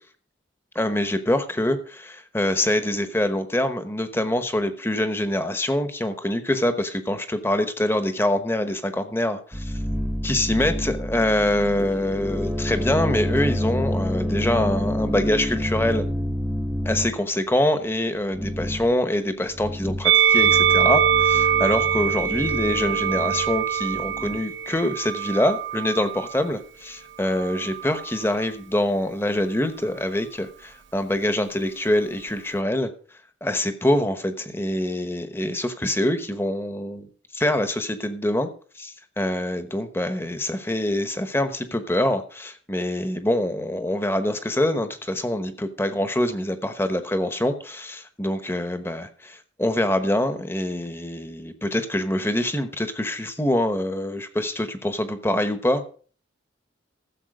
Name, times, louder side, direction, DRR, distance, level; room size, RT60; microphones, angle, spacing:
voice 1, 0.7-9.8 10.2-16.0 16.8-32.9 33.4-37.1 37.3-38.5 38.8-55.8, left 1 dB, 10° left, 9 dB, 1.0 m, -25 dB
sound 1, 9.5-17.2 18.3-18.9 19.5-20.1 20.4-24.4, equal, 5° right, 0.8 m, -28 dB
Musical instrument, 20.0-26.4 27.3-28.3, right 8 dB, 70° right, 0.6 m, -23 dB
14.5 x 7.4 x 5.0 m, 0.42 s
head